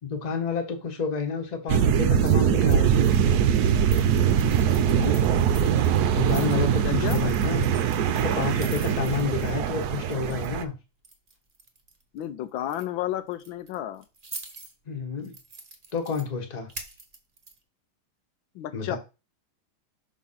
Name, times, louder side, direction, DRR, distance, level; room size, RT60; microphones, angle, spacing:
voice 1, 0.0-3.0 6.1-7.7 8.2-10.7 14.8-15.3 15.9-16.7 18.7-19.0, left 5 dB, 25° left, 1.1 m, -30 dB
sound 1, 1.7-10.6, right 8 dB, 70° right, 1.0 m, -22 dB
sound 2, 2.1-3.3 3.5-10.6 11.0-12.2 12.6-12.8 13.3-14.7 15.2-16.2 16.7-17.6, right 3 dB, 30° right, 0.8 m, -45 dB
voice 2, 4.9-5.2 6.8-7.2 12.1-14.0 18.5-19.0, left 12 dB, 85° left, 1.4 m, -32 dB
6.1 x 3.7 x 5.5 m
omnidirectional pair, 2.1 m